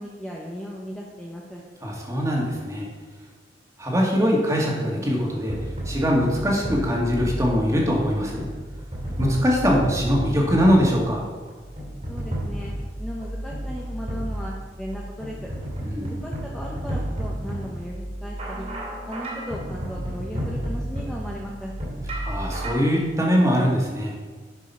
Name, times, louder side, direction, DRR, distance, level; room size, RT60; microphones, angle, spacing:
voice 1, 0.0-1.6 12.1-12.7 13.0-15.5 16.0-18.7 19.1-21.7, equal, 5° left, -4 dB, 0.9 m, -36 dB
voice 2, 1.8-2.9 3.8-5.6 5.9-8.4 9.2-11.2 15.8-16.2 22.2-24.1, equal, 15° right, -2 dB, 2.0 m, -22 dB
sound 1, 5.5-22.7, right 1 dB, 35° right, 2.5 m, -32 dB
10.5 x 5.4 x 5.6 m, 1.4 s
head